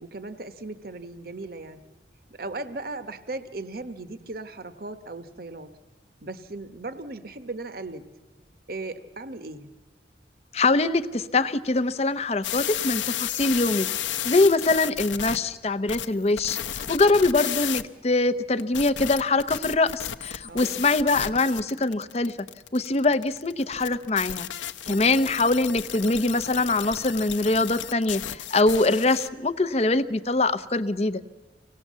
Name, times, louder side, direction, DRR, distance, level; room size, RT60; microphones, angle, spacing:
voice 1, 0.0-1.8 2.3-5.7 6.2-8.1 8.7-9.7 20.5-20.8 24.8-25.2, right 2 dB, 50° right, 11 dB, 1.1 m, -37 dB
voice 2, 10.5-13.9 14.2-22.4 22.7-31.2, left 2 dB, 35° left, 11 dB, 0.7 m, -23 dB
sound 1, 12.4-15.4 15.9-17.8 18.6-29.3, left 10 dB, 85° left, 0.8 m, -33 dB
25.5 x 18.0 x 7.4 m, 1.3 s
head